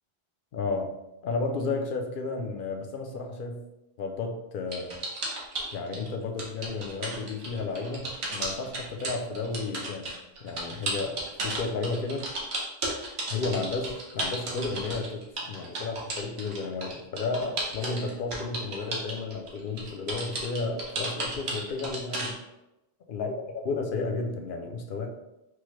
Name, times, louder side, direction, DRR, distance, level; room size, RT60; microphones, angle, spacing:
voice 1, 0.5-1.0 1.2-3.6 4.0-4.9 5.7-10.1 10.4-12.3 13.3-22.4 23.1-25.1, left 3 dB, 60° left, 3 dB, 0.6 m, -32 dB
sound 1, 4.7-6.1 6.4-22.3, right 2 dB, 90° right, 1.2 m, -33 dB
4.5 x 2.1 x 3.0 m, 0.94 s
omnidirectional pair, 1.1 m